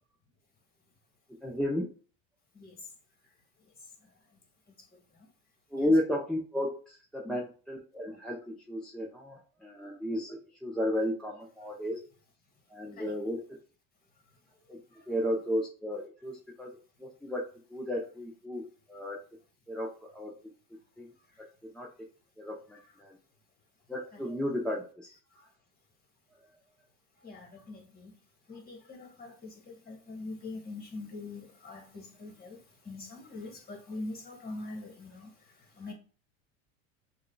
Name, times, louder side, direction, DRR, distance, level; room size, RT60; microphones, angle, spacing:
voice 1, 1.4-1.9 5.7-12.0 12.7-13.6 14.7-17.4 17.7-19.2 19.7-20.3 21.0-21.1 21.4-21.9 22.4-23.2 23.9-25.5, left 1 dB, ahead, -2 dB, 0.7 m, -33 dB
voice 2, 27.2-28.1 28.5-32.6 32.9-35.3 35.8-35.9, left 2 dB, 25° left, 3 dB, 1.9 m, -43 dB
6.4 x 2.7 x 2.3 m, 0.39 s
supercardioid pair, 105°, 40 cm